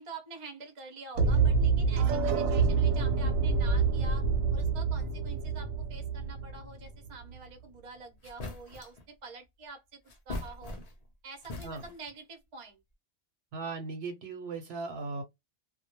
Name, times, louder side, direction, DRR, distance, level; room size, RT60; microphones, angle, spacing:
voice 1, 0.0-10.0 10.3-10.7 11.2-12.8, right 4 dB, 35° right, 0.6 m, -47 dB
sound 1, 1.2-7.1, right 4 dB, 85° right, 1.0 m, -27 dB
sound 2, 7.8-7.9 8.2-9.0 10.1-11.1 11.4-12.1, left 2 dB, 50° left, 0.4 m, -41 dB
voice 2, 13.5-15.2, right 3 dB, 60° right, 0.8 m, -37 dB
2.2 x 2.0 x 2.9 m
omnidirectional pair, 1.3 m